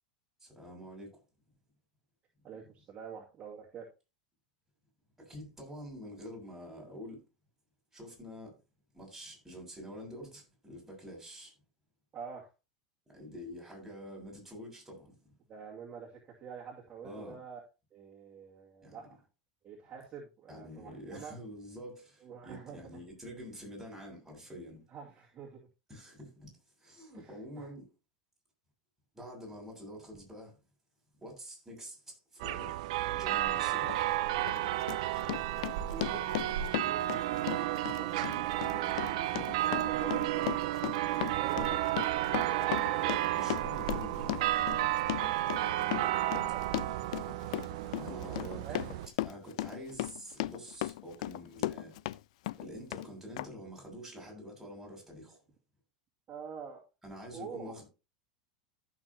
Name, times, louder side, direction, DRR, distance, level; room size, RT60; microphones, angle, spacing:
voice 1, 0.4-1.2 5.2-7.2 7.9-8.6 8.9-11.5 13.1-15.3 17.0-17.4 18.8-19.0 20.5-24.8 25.9-26.5 26.8-27.9 29.1-30.5 31.2-32.7 33.1-34.0 38.1-38.4 43.3-44.5 48.0-48.9 49.2-52.0 52.6-55.4 57.0-57.9, equal, 5° right, 7.0 m, -47 dB
voice 2, 2.4-3.9 12.1-12.5 15.5-17.6 17.9-19.2 19.6-21.4 22.2-23.0 24.9-25.7 27.1-27.7 35.9-43.6 44.0-44.1 46.1-46.9 48.2-48.8 49.6-49.7 56.3-56.8 57.3-57.8, right 7 dB, 35° right, 2.4 m, -47 dB
sound 1, 32.4-49.1, right 14 dB, 65° right, 0.7 m, -32 dB
Run, 33.9-34.0 34.5-52.2 52.5-53.1 53.4-53.5, left 17 dB, 65° left, 0.4 m, -37 dB
14.5 x 6.8 x 2.9 m
hypercardioid pair, 90°, 4 cm